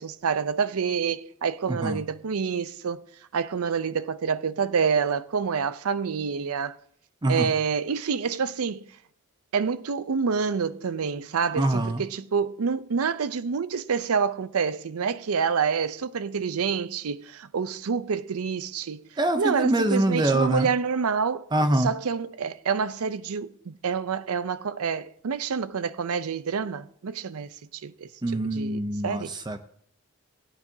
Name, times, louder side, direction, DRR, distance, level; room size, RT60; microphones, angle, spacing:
voice 1, 0.0-3.0 3.3-6.8 7.3-8.9 9.5-19.0 19.4-21.5 21.8-27.5 27.8-29.3, right 6 dB, 85° right, 0.5 m, -27 dB
voice 2, 1.7-2.0 7.2-7.5 11.6-12.0 19.2-20.7 21.5-21.9 28.2-29.6, right 1 dB, 20° right, 0.5 m, -24 dB
16.0 x 9.5 x 2.7 m
head